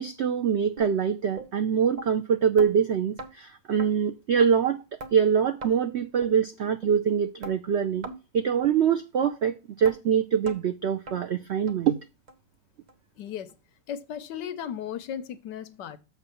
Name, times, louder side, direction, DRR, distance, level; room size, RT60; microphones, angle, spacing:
voice 1, 0.0-4.8 5.1-8.0 8.3-12.0, right 7 dB, 85° right, 0.6 m, -24 dB
sound 1, 0.8-0.9 1.4-1.5 2.0-2.1 2.6-2.7 3.2-3.3 3.8-3.9 4.4-4.5 5.0-5.1 5.6-5.7 6.2-6.3 6.8-6.9 7.4-7.6 8.0-8.2 8.6-8.8 9.2-9.3 9.8-10.0 10.5-10.6 11.1-11.2 11.7-11.8 12.3-12.4 12.9-13.0 13.5-13.6, right 2 dB, 40° right, 0.6 m, -39 dB
voice 2, 13.2-13.6 13.9-16.0, left 9 dB, 80° left, 1.4 m, -36 dB
6.7 x 4.8 x 6.9 m
omnidirectional pair, 1.9 m